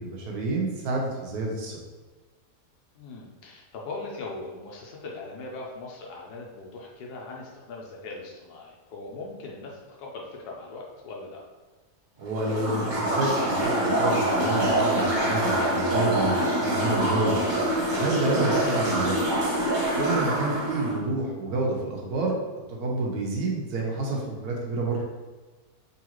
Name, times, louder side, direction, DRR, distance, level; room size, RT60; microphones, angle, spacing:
voice 1, 0.0-1.8 12.2-17.4 17.9-19.2 20.0-22.3 22.7-25.0, right 2 dB, 75° right, -1 dB, 1.3 m, -29 dB
voice 2, 3.0-11.4 20.1-20.3, left 3 dB, 90° left, -2 dB, 1.2 m, -40 dB
sound 1, 12.3-21.0, right 1 dB, 30° right, 1.6 m, -25 dB
3.9 x 3.3 x 3.0 m, 1.3 s
omnidirectional pair, 1.7 m